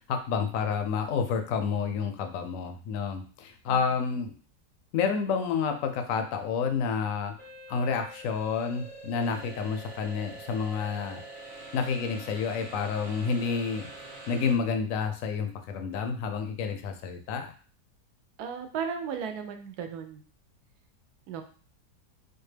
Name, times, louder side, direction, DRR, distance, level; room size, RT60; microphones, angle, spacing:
voice 1, 0.1-4.3 4.9-7.3 7.7-11.2 11.7-13.9 14.3-17.5, left 5 dB, 70° left, 6 dB, 0.8 m, -29 dB
sound 1, 7.4-14.5, right 2 dB, 35° right, 1.0 m, -45 dB
voice 2, 18.4-20.2 21.3-21.4, right 7 dB, 70° right, 6 dB, 1.0 m, -35 dB
4.3 x 2.3 x 3.2 m, 0.40 s
omnidirectional pair, 1.9 m